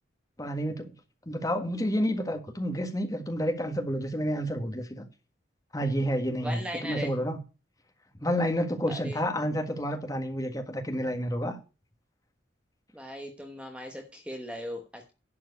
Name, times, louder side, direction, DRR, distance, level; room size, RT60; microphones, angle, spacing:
voice 1, 0.4-0.9 1.2-5.0 5.7-7.4 8.2-11.6, equal, 20° left, 1.6 m, -29 dB
voice 2, 6.4-7.1 8.9-9.2 12.9-15.1, equal, 5° right, 1.1 m, -38 dB
11.0 x 4.6 x 8.2 m
head